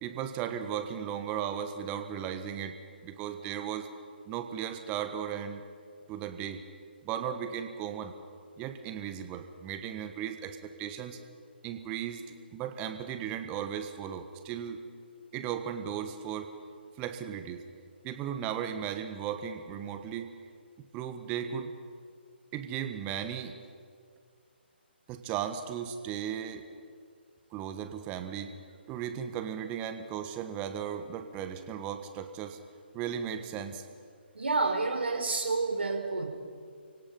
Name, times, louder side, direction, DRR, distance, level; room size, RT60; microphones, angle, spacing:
voice 1, 0.0-2.7 3.0-3.9 4.3-5.6 6.1-6.6 7.0-8.1 8.6-11.2 11.6-14.8 15.3-16.5 17.0-17.6 18.0-20.3 20.9-21.7 22.5-23.6 25.1-26.6 27.5-28.5 28.9-32.6 32.9-33.8, right 9 dB, 20° right, 8 dB, 1.4 m, -36 dB
voice 2, 34.3-36.3, right 3 dB, 70° right, 3 dB, 4.2 m, -29 dB
30.0 x 17.5 x 5.5 m, 2.1 s
figure-of-eight pair, 140°, 6 cm